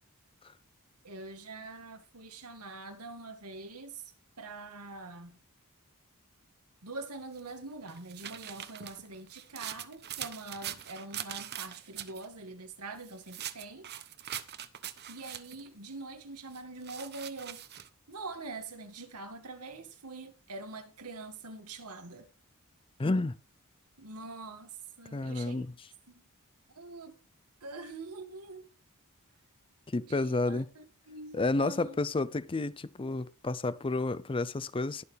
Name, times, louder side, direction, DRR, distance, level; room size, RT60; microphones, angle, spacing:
voice 1, 1.0-5.4 6.8-13.9 15.1-17.6 18.1-22.3 24.0-25.7 26.1-26.2 26.7-27.2 27.6-28.7 30.0-32.0, right 3 dB, 90° right, 2.1 m, -44 dB
sound 1, 7.4-12.3 13.0-15.7 16.5-17.9, right 10 dB, 50° right, 0.9 m, -42 dB
voice 2, 23.0-23.4 25.1-25.7 29.9-30.7 31.3-35.0, left 2 dB, 25° left, 0.5 m, -30 dB
20.5 x 6.8 x 3.4 m
head